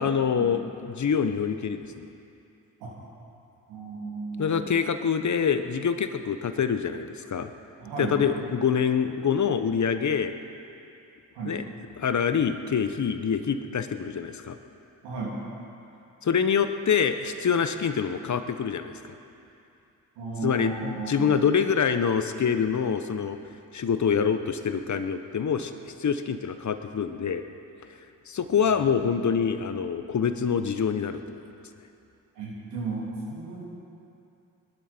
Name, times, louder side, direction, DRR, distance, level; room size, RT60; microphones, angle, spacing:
voice 1, 0.0-2.1 4.4-7.5 8.0-10.3 11.4-11.6 12.0-14.6 16.2-18.9 20.4-23.4 23.7-25.7 26.0-27.4 28.3-31.4, left 7 dB, 45° left, 9 dB, 1.1 m, -25 dB
voice 2, 3.7-4.7 7.8-8.2 11.3-11.5 15.0-15.3 20.1-21.3 28.8-29.2 32.3-33.7, right 3 dB, 80° right, -4 dB, 3.4 m, -35 dB
21.5 x 12.0 x 4.5 m, 2.7 s
hypercardioid pair, 45°, 41 cm